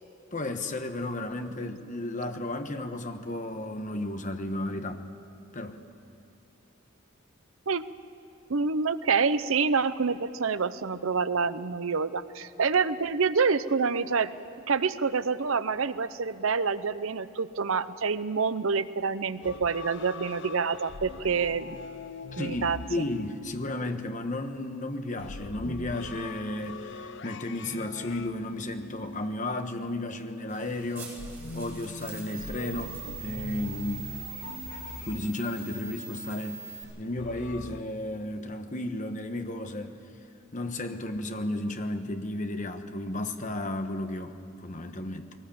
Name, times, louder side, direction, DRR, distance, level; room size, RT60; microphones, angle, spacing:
voice 1, 0.3-5.0 5.5-5.8 22.3-31.2 31.5-34.1 35.0-40.0 40.5-45.3, left 1 dB, 35° left, 1.3 m, -33 dB
voice 2, 8.5-14.3 14.7-21.8 22.4-22.8, right 5 dB, 70° right, 0.7 m, -27 dB
sound 1, 19.4-24.0 25.2-30.0 31.2-35.8 37.2-37.8, left 4 dB, 60° left, 0.6 m, -42 dB
sound 2, 30.5-36.8, right 5 dB, 10° right, 7.3 m, -43 dB
22.0 x 18.5 x 8.7 m
head